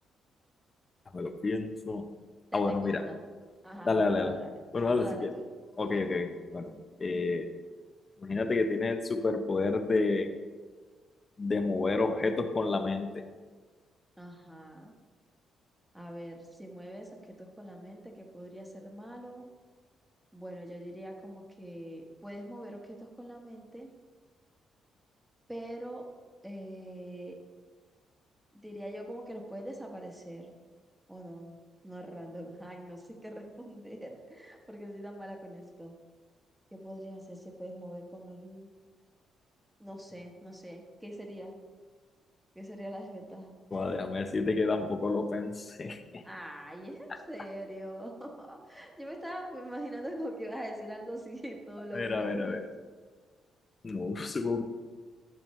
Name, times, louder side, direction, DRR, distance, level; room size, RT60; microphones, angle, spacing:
voice 1, 1.1-2.1 2.5-3.0 3.8-4.4 4.7-5.3 5.8-6.7 7.0-7.5 8.2-10.3 11.4-13.2 43.7-46.2 51.9-52.7 53.8-54.6, left 3 dB, 25° left, 7 dB, 0.7 m, -30 dB
voice 2, 2.5-3.2 3.6-4.5 4.9-5.4 14.2-14.9 15.9-17.1 17.4-19.5 20.3-23.9 25.5-26.0 26.4-27.3 28.6-30.5 31.1-31.6 31.8-35.9 36.7-38.7 39.8-41.5 42.5-43.5 46.2-52.6, equal, 5° right, 1 dB, 1.2 m, -43 dB
12.5 x 7.0 x 3.2 m, 1.5 s
cardioid pair, 155°, 0 cm